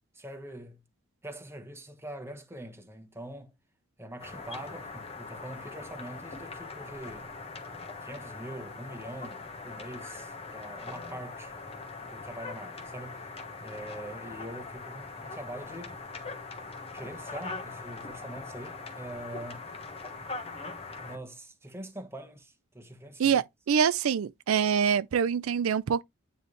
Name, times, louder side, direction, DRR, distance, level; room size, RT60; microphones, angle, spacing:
voice 1, 0.1-0.8 1.2-3.6 4.0-7.3 8.0-11.5 12.0-13.3 13.6-16.0 16.9-19.7 21.0-23.4, right 1 dB, 10° right, 1.1 m, -43 dB
sound 1, 4.2-21.2, left 3 dB, 30° left, 1.2 m, -41 dB
voice 2, 23.2-26.0, right 7 dB, 90° right, 0.4 m, -25 dB
9.2 x 3.2 x 3.2 m
head